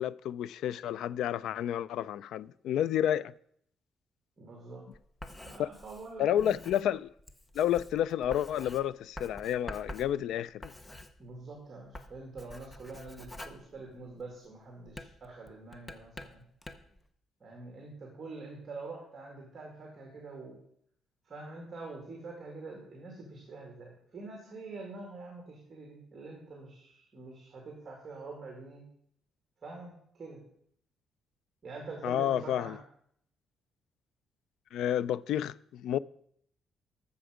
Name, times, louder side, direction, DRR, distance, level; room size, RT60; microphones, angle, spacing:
voice 1, 0.0-3.3 5.6-5.7 6.2-7.1 7.5-10.7 32.0-32.8 34.7-36.0, left 10 dB, 75° left, 0.3 m, -30 dB
voice 2, 4.4-4.9 5.4-6.6 11.2-16.4 17.4-20.5 21.3-28.8 29.6-29.9 30.2-30.4 31.6-32.8, right 3 dB, 25° right, 2.2 m, -45 dB
Writing, 4.9-11.6 11.8-14.4 14.9-17.0, left 1 dB, 10° left, 0.7 m, -47 dB
13.0 x 7.0 x 5.0 m
cardioid pair, 170°, 0 cm